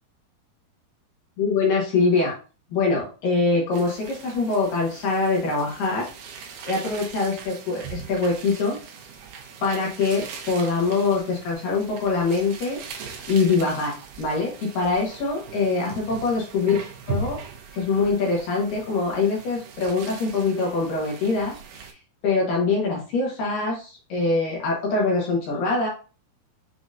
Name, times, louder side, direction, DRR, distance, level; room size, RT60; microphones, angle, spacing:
voice 1, 1.4-2.3 2.7-6.1 6.6-8.8 9.6-12.8 13.3-16.8 17.1-17.4 17.7-21.6 22.2-25.9, left 4 dB, 65° left, -3 dB, 2.6 m, -23 dB
sound 1, 3.7-21.9, right 5 dB, 75° right, 2.0 m, -40 dB
7.4 x 2.9 x 2.5 m, 0.35 s
omnidirectional pair, 4.6 m